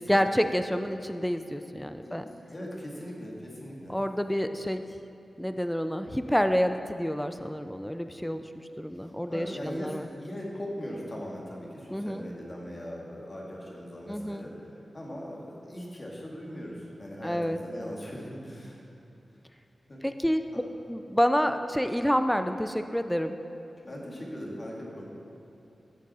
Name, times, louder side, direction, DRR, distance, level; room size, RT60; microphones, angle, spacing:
voice 1, 0.0-2.2 3.9-4.8 5.4-10.1 11.9-12.2 14.1-14.5 17.2-17.6 20.0-20.4 20.9-23.4, equal, 5° left, 8 dB, 0.4 m, -28 dB
voice 2, 2.0-4.0 9.3-18.8 19.9-20.0 20.5-20.6 23.8-25.0, equal, 30° left, -3 dB, 1.9 m, -40 dB
15.5 x 6.3 x 4.2 m, 2.8 s
wide cardioid pair, 100°, 0 cm